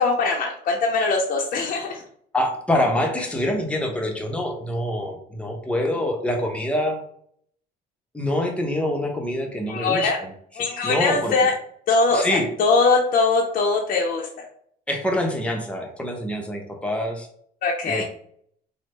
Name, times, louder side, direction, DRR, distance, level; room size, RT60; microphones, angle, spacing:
voice 1, 0.0-2.0 9.7-10.2 10.6-11.5 11.9-14.3 17.6-18.0, left 3 dB, 55° left, -1 dB, 0.5 m, -21 dB
voice 2, 2.3-7.0 8.1-10.3 10.8-11.3 12.1-12.5 14.9-17.3 17.8-18.0, left 1 dB, 5° left, 2 dB, 0.7 m, -25 dB
3.2 x 2.0 x 3.1 m, 0.64 s
cardioid pair, 110°, 17 cm